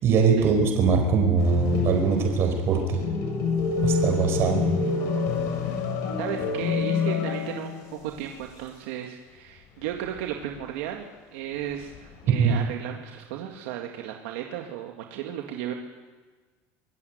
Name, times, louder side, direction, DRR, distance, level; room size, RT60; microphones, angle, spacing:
voice 1, 0.0-3.0 3.8-4.6 12.4-12.5, right 5 dB, 45° right, 3 dB, 4.8 m, -22 dB
sound 1, 1.4-7.9 8.2-8.3 10.0-10.6 11.7-12.4, left 4 dB, 60° left, 5.1 m, -27 dB
voice 2, 6.2-15.7, right 10 dB, 80° right, 2 dB, 2.0 m, -35 dB
24.5 x 15.5 x 9.4 m, 1.4 s
supercardioid pair, 130°, 6 cm